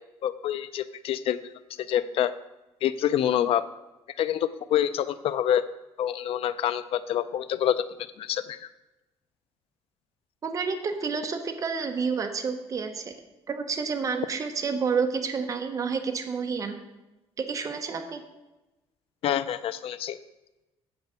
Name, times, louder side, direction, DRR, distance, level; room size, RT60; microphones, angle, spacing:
voice 1, 0.2-1.4 1.9-2.3 2.8-3.6 4.2-5.6 6.0-7.8 8.2-8.6 19.2-20.2, left 10 dB, 60° left, 14 dB, 0.5 m, -26 dB
voice 2, 10.4-13.1 13.5-16.7 17.4-18.2, right 5 dB, 30° right, 5 dB, 0.8 m, -29 dB
8.8 x 4.7 x 6.7 m, 1.0 s
cardioid pair, 155°, 11 cm